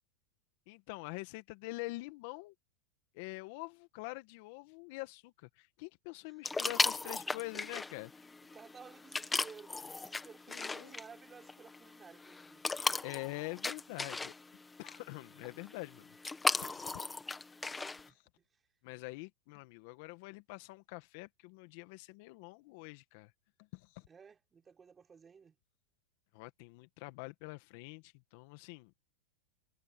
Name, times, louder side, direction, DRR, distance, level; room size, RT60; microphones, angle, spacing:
voice 1, 0.7-2.5 3.1-8.1 10.5-10.9 13.0-14.3 14.8-16.1 16.6-17.0 18.8-23.3 23.7-24.1 26.3-28.9, left 23 dB, 60° left, 1.8 m, -45 dB
voice 2, 6.2-7.4 7.8-7.9 8.5-12.7 18.1-18.2 18.5-18.6 24.1-25.5, right 6 dB, 20° right, 4.9 m, -56 dB
sound 1, 6.4-18.1, left 3 dB, 10° left, 1.9 m, -37 dB
hypercardioid pair, 110°, 0 cm